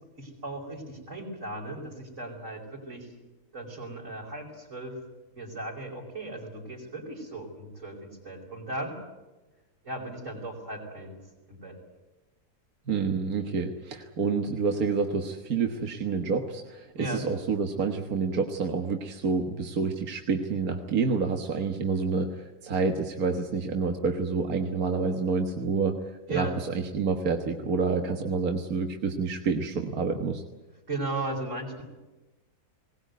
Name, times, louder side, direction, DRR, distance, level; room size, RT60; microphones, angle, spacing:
voice 1, 0.1-3.1 3.5-5.0 5.3-9.0 9.8-11.1 11.5-11.8 17.0-17.2 26.3-26.5 30.9-31.8, right 2 dB, 50° right, -5 dB, 5.1 m, -36 dB
voice 2, 12.9-26.0 26.3-26.5 26.7-30.4, right 4 dB, 65° right, 4 dB, 1.9 m, -28 dB
21.0 x 19.5 x 9.2 m, 1.1 s
omnidirectional pair, 1.7 m